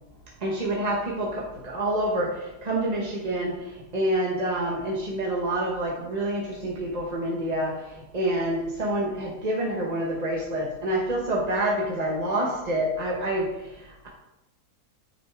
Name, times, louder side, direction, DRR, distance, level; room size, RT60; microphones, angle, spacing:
voice 1, 0.4-14.1, right 1 dB, 30° right, -3 dB, 0.9 m, -27 dB
9.7 x 5.2 x 3.4 m, 0.96 s
omnidirectional pair, 1.7 m